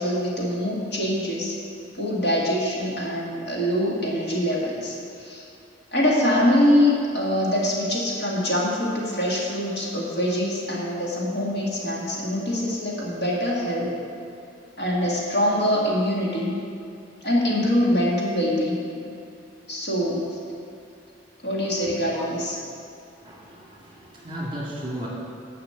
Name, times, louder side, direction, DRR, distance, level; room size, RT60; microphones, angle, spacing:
voice 1, 0.0-1.6 2.0-5.5 5.9-13.9 14.8-16.5 17.2-18.9 19.7-20.2 21.4-22.6, left 1 dB, 55° left, -5 dB, 2.3 m, -24 dB
voice 2, 21.9-22.2 23.2-25.1, right 1 dB, 25° right, -4 dB, 2.1 m, -35 dB
10.0 x 5.9 x 8.0 m, 2.5 s
head